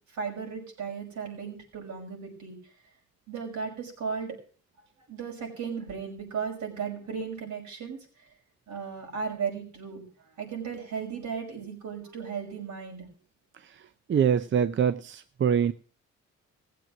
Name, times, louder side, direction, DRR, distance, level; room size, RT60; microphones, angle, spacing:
voice 1, 0.1-2.6 3.3-4.4 5.1-8.3 8.7-13.1, right 6 dB, 70° right, 1 dB, 5.9 m, -36 dB
voice 2, 14.1-15.7, right 8 dB, 40° right, 12 dB, 0.6 m, -24 dB
16.5 x 7.6 x 6.1 m, 0.41 s
cardioid pair, 90°, 30 cm